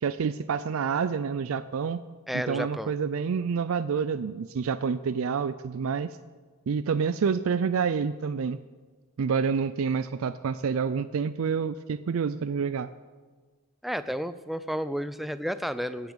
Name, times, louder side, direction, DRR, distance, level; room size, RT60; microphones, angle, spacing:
voice 1, 0.0-2.0 2.3-6.1 6.7-8.6 9.2-12.9, right 6 dB, 70° right, 13 dB, 0.4 m, -28 dB
voice 2, 2.3-2.9 13.8-16.1, equal, ahead, 13 dB, 0.3 m, -32 dB
16.0 x 6.9 x 7.9 m, 1.4 s
head